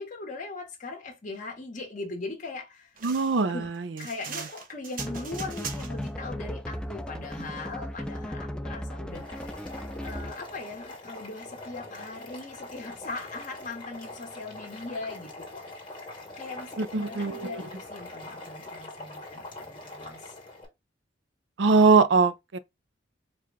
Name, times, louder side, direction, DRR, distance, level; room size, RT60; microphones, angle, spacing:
voice 1, 0.0-2.9 3.5-3.7 4.0-9.6 10.0-15.7 16.0-16.1 16.4-20.3, left 3 dB, 45° left, 1.4 m, -40 dB
sound 1, 3.0-6.1, right 6 dB, 50° right, 0.9 m, -40 dB
voice 2, 3.0-3.6 16.8-17.6 21.6-22.6, right 4 dB, 70° right, 0.5 m, -22 dB
sound 2, 5.0-10.5, equal, 5° left, 0.3 m, -36 dB
Boiling, 9.1-20.7, left 2 dB, 25° left, 1.6 m, -43 dB
4.7 x 2.4 x 3.4 m
head